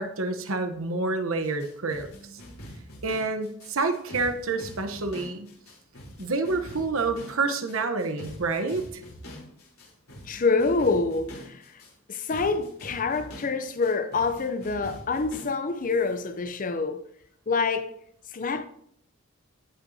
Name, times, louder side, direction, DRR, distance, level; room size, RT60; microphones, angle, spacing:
voice 1, 0.0-2.1 3.0-5.5 6.2-9.0, right 3 dB, 65° right, 0.9 m, -28 dB
sound 1, 1.4-15.5, equal, 75° left, 3.5 m, -44 dB
voice 2, 10.3-11.8 12.1-17.1 17.5-18.0 18.3-18.6, left 4 dB, 35° left, 0.5 m, -26 dB
16.0 x 5.6 x 2.7 m
head